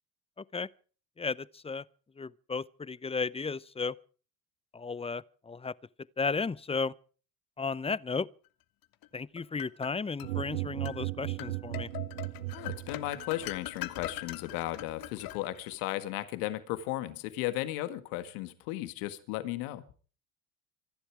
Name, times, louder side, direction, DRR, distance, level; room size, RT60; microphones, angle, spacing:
voice 1, 0.4-0.7 1.2-1.8 2.2-4.0 4.7-5.7 6.2-6.9 7.6-8.3 9.1-11.9, left 4 dB, 15° left, 0.7 m, -34 dB
sound 1, 9.0-10.3 10.8-11.0 11.4-15.8, left 14 dB, 55° left, 1.5 m, -42 dB
sound 2, 10.2-13.5, right 18 dB, 90° right, 0.9 m, -36 dB
voice 2, 12.5-19.8, left 15 dB, 70° left, 1.9 m, -35 dB
25.5 x 11.5 x 4.9 m
hypercardioid pair, 70°, 41 cm